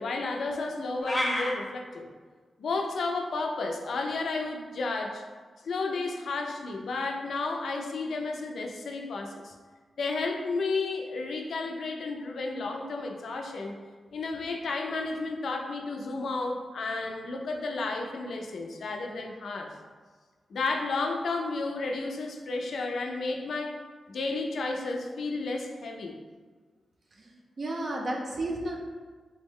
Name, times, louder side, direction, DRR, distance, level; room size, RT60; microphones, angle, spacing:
voice 1, 0.0-2.1 2.6-5.2 5.6-9.5 10.0-13.8 14.1-19.7 20.5-23.8 24.1-26.2, left 3 dB, 75° left, 2 dB, 0.4 m, -32 dB
sound 1, 1.0-1.5, left 1 dB, 15° left, 0.6 m, -28 dB
voice 2, 27.1-28.8, right 1 dB, 50° right, -1 dB, 0.5 m, -33 dB
3.4 x 2.1 x 3.5 m, 1.5 s
cardioid pair, 70°, 0 cm